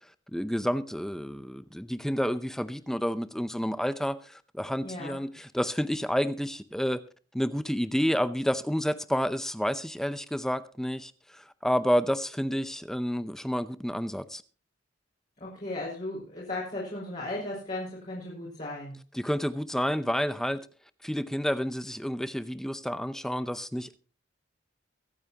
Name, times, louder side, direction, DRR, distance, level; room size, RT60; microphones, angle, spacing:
voice 1, 0.3-7.0 7.3-14.4 19.1-20.7 21.0-24.0, equal, 5° left, 0.6 m, -30 dB
voice 2, 4.8-5.2 15.4-18.9, left 2 dB, 45° left, 5.0 m, -36 dB
23.5 x 8.7 x 2.9 m
head